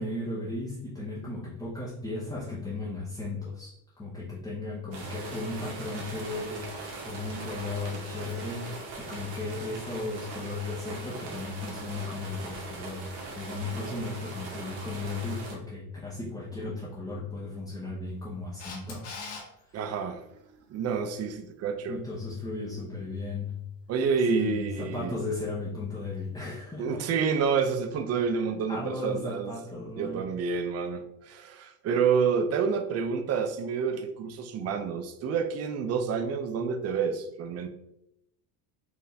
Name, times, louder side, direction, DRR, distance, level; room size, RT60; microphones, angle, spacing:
voice 1, 0.0-3.7 4.0-19.0 19.7-19.8 21.9-23.7 24.3-27.1 28.1-28.2 28.7-30.3, left 2 dB, 10° left, -8 dB, 0.9 m, -36 dB
sound 1, 4.9-15.5, right 3 dB, 70° right, 1.5 m, -40 dB
Camera, 18.6-19.4 26.1-26.2, left 4 dB, 65° left, 1.5 m, -40 dB
voice 2, 19.7-20.2 20.7-22.0 23.9-25.1 26.8-29.5 30.0-37.7, right 6 dB, 35° right, 8 dB, 0.5 m, -28 dB
4.7 x 2.5 x 3.2 m, 0.81 s
supercardioid pair, 115°, 45 cm